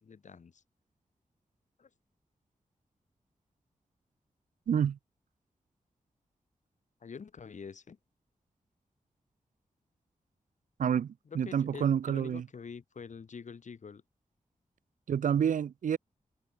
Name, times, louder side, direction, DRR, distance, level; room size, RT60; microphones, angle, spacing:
voice 1, 0.0-0.6 1.8-1.9 7.0-8.0 11.3-14.0, left 5 dB, 65° left, 4.1 m, -46 dB
voice 2, 4.7-5.0 10.8-12.4 15.1-16.0, right 8 dB, 75° right, 0.5 m, -28 dB
wide cardioid pair, 145°, 13 cm